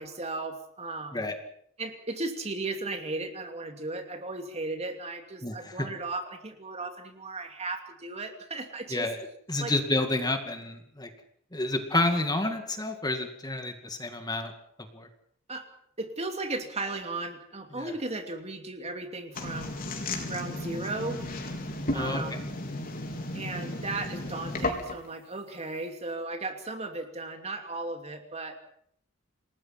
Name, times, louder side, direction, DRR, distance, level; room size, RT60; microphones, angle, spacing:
voice 1, 0.0-1.2 1.8-9.1 9.6-9.7 15.5-15.7 16.0-19.8 20.2-21.2 21.9-22.5 23.3-28.6, right 2 dB, 30° right, 6 dB, 2.8 m, -36 dB
voice 2, 5.4-5.9 8.9-9.2 9.5-11.1 11.5-14.5 14.9-15.1 17.7-17.9 21.9-22.2, left 2 dB, 20° left, 6 dB, 2.2 m, -29 dB
sound 1, 19.3-25.1, left 1 dB, 45° left, 4.3 m, -34 dB
28.0 x 19.5 x 5.8 m, 0.66 s
head